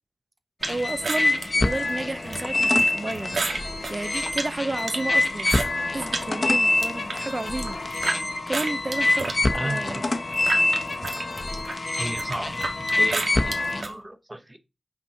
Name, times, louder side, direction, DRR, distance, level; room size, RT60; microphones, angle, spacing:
sound 1, 0.6-13.8, left 2 dB, 45° left, 1.0 m, -25 dB
sound 2, 0.6-6.3 6.6-8.2 8.5-13.9, right 3 dB, 85° right, 1.5 m, -32 dB
voice 1, 0.7-3.4 3.9-5.5 5.9-7.8 8.5-9.3 9.6-10.0, right 2 dB, 40° right, 0.5 m, -31 dB
voice 2, 9.5-10.1 12.0-12.6 13.0-14.6, right 1 dB, 20° right, 1.0 m, -34 dB
5.9 x 4.2 x 5.5 m
wide cardioid pair, 75°, 0 cm